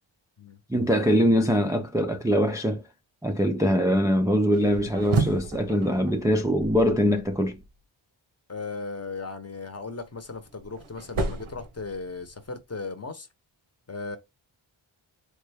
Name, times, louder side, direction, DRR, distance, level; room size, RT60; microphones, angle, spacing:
voice 1, 0.7-2.8 3.2-7.6, equal, 5° right, 0.4 m, -23 dB
sound 1, 4.5-7.7 9.9-12.5, right 4 dB, 85° right, 0.9 m, -33 dB
voice 2, 8.5-13.3 13.9-14.2, left 4 dB, 30° left, 0.9 m, -36 dB
3.4 x 2.3 x 3.4 m
wide cardioid pair, 60°, 49 cm